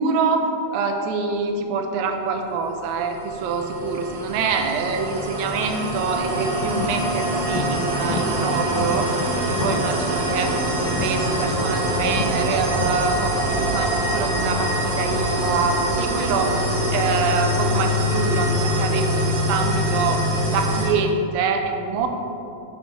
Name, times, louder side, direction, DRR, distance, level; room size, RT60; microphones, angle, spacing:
voice 1, 0.0-9.1 9.4-10.6 10.8-16.6 16.9-22.1, right 4 dB, 85° right, 5 dB, 2.9 m, -25 dB
sound 1, 2.9-20.9, equal, 70° right, 2.4 m, -24 dB
sound 2, 6.1-13.7, left 3 dB, 90° left, 2.3 m, -32 dB
10.0 x 3.5 x 5.5 m, 2.8 s
omnidirectional pair, 5.3 m